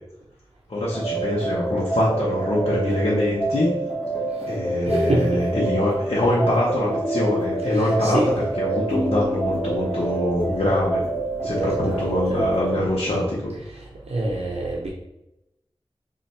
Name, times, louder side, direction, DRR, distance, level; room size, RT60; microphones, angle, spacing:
voice 1, 0.7-3.7 4.5-8.2 8.6-11.0 11.4-13.5, left 1 dB, 75° left, -6 dB, 0.8 m, -23 dB
sound 1, 0.9-12.8, right 1 dB, 10° left, 1.2 m, -27 dB
voice 2, 4.8-5.4 7.7-8.3 11.4-12.5 13.6-14.9, right 1 dB, 85° right, -3 dB, 0.6 m, -27 dB
3.2 x 2.4 x 4.2 m, 0.89 s
wide cardioid pair, 55°, 10 cm